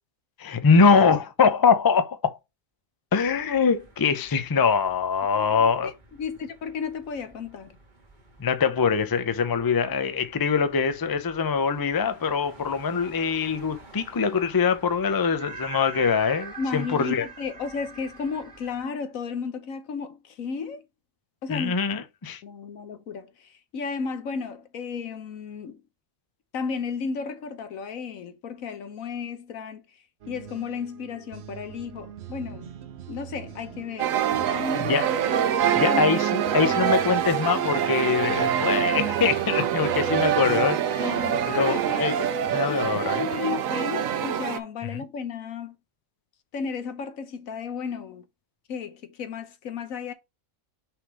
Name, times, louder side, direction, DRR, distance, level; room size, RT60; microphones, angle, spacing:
voice 1, 0.4-2.4 3.1-5.9 8.4-17.3 21.5-22.4 34.8-35.1 35.8-41.1 41.5-42.1 42.5-43.3 44.9-45.0, left 5 dB, 25° left, 0.5 m, -23 dB
sound 1, 3.2-18.8, right 4 dB, 35° right, 1.7 m, -47 dB
voice 2, 6.2-7.8 16.6-20.8 21.4-22.0 22.4-25.8 26.5-29.8 30.3-32.7 33.1-34.9 35.8-36.0 36.6-36.7 41.0-42.3 42.7-45.7 46.5-48.2 48.7-50.1, left 5 dB, 80° left, 1.4 m, -33 dB
sound 2, 30.2-43.4, right 10 dB, 60° right, 0.8 m, -43 dB
sound 3, 34.0-44.6, right 9 dB, 85° right, 1.1 m, -25 dB
5.8 x 3.6 x 4.7 m
omnidirectional pair, 1.4 m